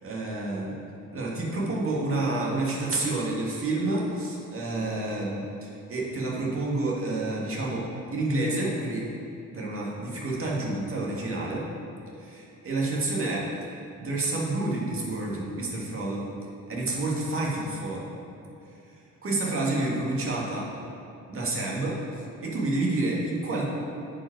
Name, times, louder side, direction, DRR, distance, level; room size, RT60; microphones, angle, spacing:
voice 1, 0.0-0.8 1.1-7.9 8.1-9.1 9.5-11.7 12.2-13.5 14.0-16.2 16.7-18.1 19.2-20.7 21.3-22.0 22.4-23.6, right 2 dB, 45° right, -3 dB, 1.9 m, -29 dB
9.3 x 5.3 x 4.7 m, 2.7 s
cardioid pair, 90°, 30 cm